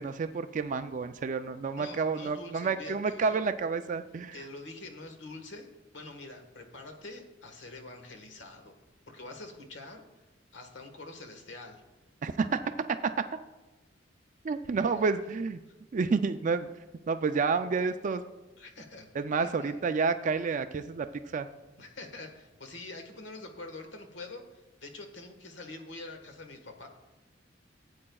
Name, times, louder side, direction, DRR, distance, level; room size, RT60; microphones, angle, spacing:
voice 1, 0.0-4.4 12.2-12.6 14.4-15.6 15.9-16.7 17.1-18.2 19.1-21.1 21.3-21.5, right 4 dB, 45° right, 10 dB, 0.4 m, -29 dB
voice 2, 1.8-3.4 4.3-8.8 9.1-10.0 10.5-11.8 18.6-19.1 19.4-19.8 21.8-26.9, left 2 dB, 75° left, 5 dB, 1.4 m, -45 dB
16.5 x 8.7 x 2.3 m, 1.1 s
head